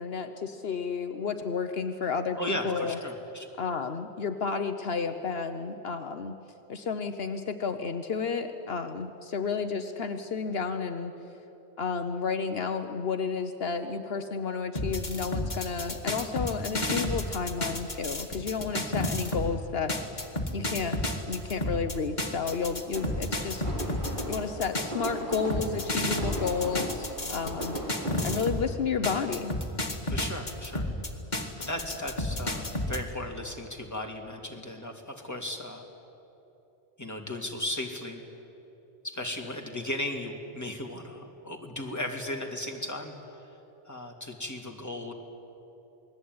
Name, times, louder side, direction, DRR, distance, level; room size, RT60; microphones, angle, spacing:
voice 1, 0.0-3.0 3.6-6.3 6.7-11.1 11.8-19.9 20.5-21.0 21.3-23.6 24.3-27.8 28.2-29.6, left 5 dB, 70° left, 7 dB, 1.2 m, -31 dB
voice 2, 2.4-3.5 30.1-30.9 31.6-35.9 37.0-38.2 39.0-43.1 43.9-45.1, left 1 dB, 15° left, 2 dB, 2.7 m, -36 dB
sound 1, 14.8-19.5 19.9-28.7 29.0-33.0, left 1 dB, 45° left, 2.2 m, -31 dB
sound 2, 22.9-28.4, right 1 dB, 50° right, 6.0 m, -37 dB
28.0 x 20.5 x 9.6 m, 3.0 s
omnidirectional pair, 1.1 m